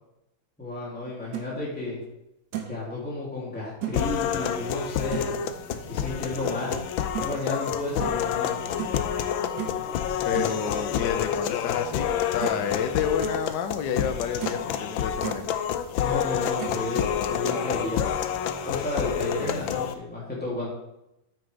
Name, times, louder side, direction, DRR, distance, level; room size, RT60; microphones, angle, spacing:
voice 1, 0.6-2.0 2.7-6.8 7.2-8.6 16.0-18.0 18.7-20.7, left 2 dB, 5° left, -6 dB, 2.8 m, -32 dB
sound 1, 1.1-1.5 2.0-2.1 2.5-2.8 3.8-4.0 5.1-5.4 7.1-7.3 8.0-8.2 8.8-9.0 9.6-9.8 10.3-10.5 11.9-12.0 12.4-12.7 13.0-13.4 13.9-14.0 14.4-14.7 15.0-15.4 16.6-16.8, right 9 dB, 70° right, 1.9 m, -34 dB
sound 2, 3.9-19.9, left 8 dB, 85° left, 1.4 m, -28 dB
voice 2, 10.2-15.5 19.4-19.8, left 8 dB, 70° left, 7 dB, 1.4 m, -30 dB
9.1 x 9.0 x 3.4 m, 0.89 s
omnidirectional pair, 2.1 m